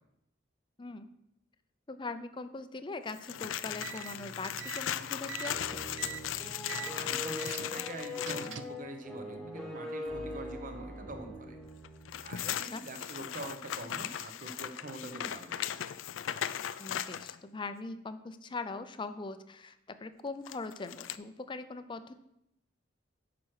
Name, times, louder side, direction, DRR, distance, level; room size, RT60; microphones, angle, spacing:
voice 1, 0.8-1.1 1.9-5.9 12.7-12.8 16.8-19.8 20.0-22.1, left 3 dB, 25° left, 11 dB, 0.5 m, -41 dB
sound 1, 3.1-8.6 11.8-17.4 20.5-21.2, left 10 dB, 85° left, 0.4 m, -38 dB
sound 2, 3.7-8.8, right 8 dB, 75° right, 0.5 m, -45 dB
sound 3, 5.5-12.5, left 1 dB, ahead, 1.3 m, -42 dB
voice 2, 6.7-11.6 12.2-15.7, right 2 dB, 45° right, 6 dB, 0.9 m, -44 dB
8.8 x 6.0 x 4.8 m, 0.82 s
head